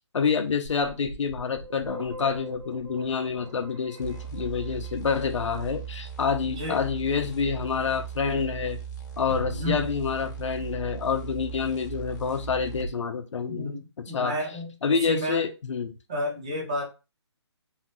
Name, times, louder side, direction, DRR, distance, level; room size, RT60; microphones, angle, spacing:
voice 1, 0.1-8.8 9.2-13.7 14.1-14.3 14.8-15.9, left 6 dB, 85° left, 5 dB, 0.6 m, -27 dB
sound 1, 0.6-5.5, right 1 dB, 80° right, 1.2 m, -43 dB
sound 2, 4.0-12.9, right 8 dB, 40° left, 0.6 m, -38 dB
voice 2, 6.5-6.9 9.6-9.8 13.4-15.4 16.1-16.8, left 1 dB, 15° right, -2 dB, 0.4 m, -32 dB
sound 3, 9.3-11.5, left 2 dB, 50° right, 0.8 m, -40 dB
3.1 x 2.2 x 2.9 m, 0.29 s
hypercardioid pair, 175°, 15 cm